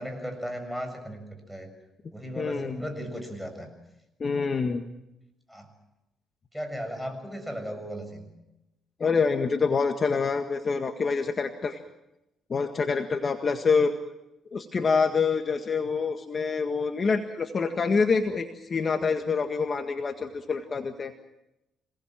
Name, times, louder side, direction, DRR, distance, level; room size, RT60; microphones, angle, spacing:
voice 1, 0.0-1.7 2.1-3.7 5.5-5.7 6.5-8.3, equal, ahead, 6 dB, 6.9 m, -36 dB
voice 2, 2.4-2.8 4.2-4.8 9.0-11.8 12.5-13.9 14.5-21.1, left 5 dB, 40° left, 5 dB, 1.8 m, -26 dB
27.0 x 19.0 x 7.5 m, 0.92 s
cardioid pair, 90°, 0 cm